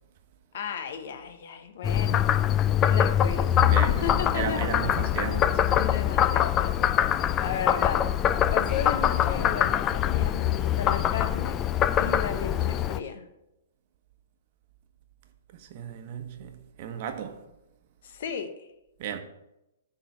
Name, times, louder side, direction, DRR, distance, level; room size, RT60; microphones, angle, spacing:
voice 1, 0.5-2.3 2.8-4.7 5.7-11.6 12.0-13.3 18.0-18.7, left 7 dB, 60° left, 1.0 m, -35 dB
Frog, 1.8-13.0, left 10 dB, 25° left, 0.4 m, -24 dB
voice 2, 3.7-4.1 4.3-5.7 15.5-17.4 19.0-19.2, right 8 dB, 50° right, 1.0 m, -34 dB
10.0 x 3.9 x 6.1 m
hypercardioid pair, 135°, 0 cm